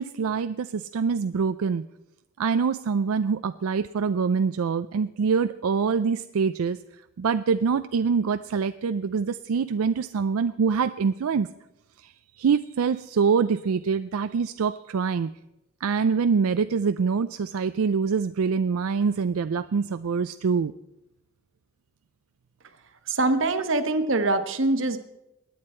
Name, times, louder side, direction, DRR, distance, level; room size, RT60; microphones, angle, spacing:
voice 1, 0.0-1.8 2.4-6.8 7.2-11.5 12.0-15.3 15.8-20.7, right 5 dB, 80° right, 11 dB, 0.4 m, -25 dB
voice 2, 23.1-25.0, right 2 dB, 60° right, 9 dB, 1.2 m, -23 dB
21.5 x 9.4 x 4.4 m, 0.91 s
head